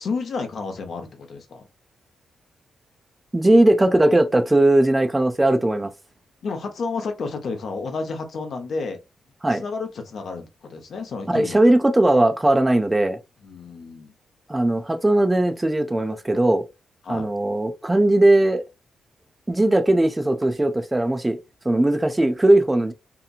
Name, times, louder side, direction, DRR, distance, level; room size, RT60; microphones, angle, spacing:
voice 1, 0.0-1.7 6.4-9.0 9.5-11.6 13.4-14.1 17.0-17.3, left 4 dB, 60° left, 0.7 m, -31 dB
voice 2, 3.3-5.9 9.4-9.6 11.3-13.2 14.5-16.6 17.1-18.6 19.5-21.4 21.6-22.9, right 1 dB, 15° right, 0.4 m, -18 dB
2.8 x 2.6 x 2.4 m
cardioid pair, 100°, 0 cm